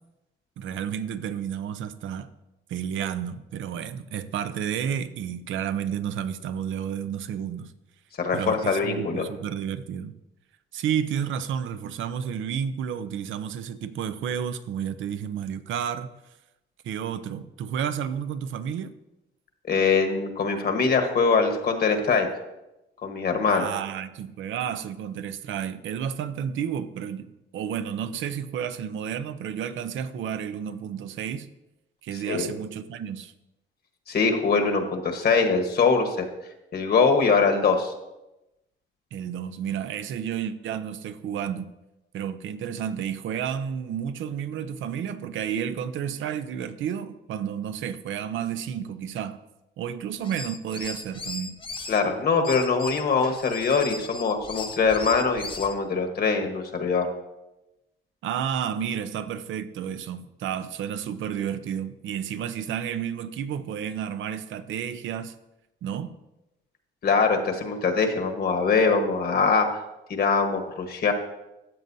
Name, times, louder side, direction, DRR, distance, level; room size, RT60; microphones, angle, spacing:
voice 1, 0.6-2.3 2.7-7.7 8.3-10.1 10.7-16.1 16.8-18.9 23.5-31.5 32.0-33.3 39.1-41.7 42.1-49.4 49.8-51.6 58.2-65.3 65.8-66.1, right 8 dB, 75° right, 12 dB, 0.7 m, -31 dB
voice 2, 8.2-9.2 19.7-22.3 23.0-23.7 32.3-32.5 34.1-36.2 36.7-37.9 51.9-57.1 67.0-69.7 70.1-71.1, left 5 dB, 50° left, 5 dB, 1.3 m, -23 dB
sound 1, 50.2-52.0 52.4-55.8, left 3 dB, 25° left, 0.9 m, -38 dB
13.5 x 7.5 x 2.7 m, 0.95 s
cardioid pair, 90°, 20 cm